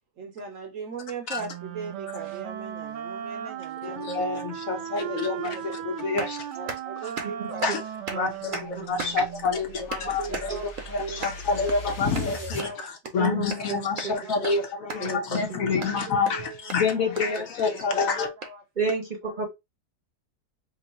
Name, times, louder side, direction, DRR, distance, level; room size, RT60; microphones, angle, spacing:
voice 1, 0.2-4.2 4.8-4.9 5.2-5.6 6.2-7.7 8.1-11.5 12.0-13.7 14.0-14.5 14.9-15.1 15.7-17.4 17.7-18.1 18.4-18.6 18.9-19.0 19.2-19.3, right 4 dB, 65° right, 0.9 m, -38 dB
Wind instrument woodwind instrument, 1.4-9.6, right 10 dB, 85° right, 1.2 m, -36 dB
voice 2, 4.1-4.4 4.7-5.4 6.0-6.2 7.6-7.8 8.2-8.3 8.9-9.7 10.1-10.5 11.2-11.3 11.6-12.7 13.1-14.6 14.9-16.4 16.7-18.3, left 4 dB, 60° left, 1.0 m, -26 dB
sound 1, 8.6-12.7, left 1 dB, 35° left, 1.0 m, -41 dB
voice 3, 13.2-13.8 15.0-15.2 15.5-15.8 18.8-19.5, right 3 dB, 40° right, 0.7 m, -30 dB
3.0 x 2.6 x 4.1 m
omnidirectional pair, 1.8 m